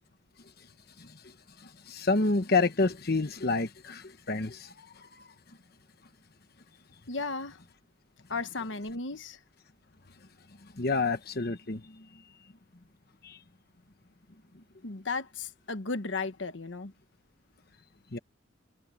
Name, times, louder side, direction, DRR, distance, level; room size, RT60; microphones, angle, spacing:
voice 1, 1.6-5.1 10.8-12.0 13.2-13.4 18.1-18.2, left 3 dB, 55° left, 1.2 m, -29 dB
voice 2, 7.1-7.6 8.3-9.4 14.8-16.9, left 3 dB, 70° left, 1.3 m, -35 dB
head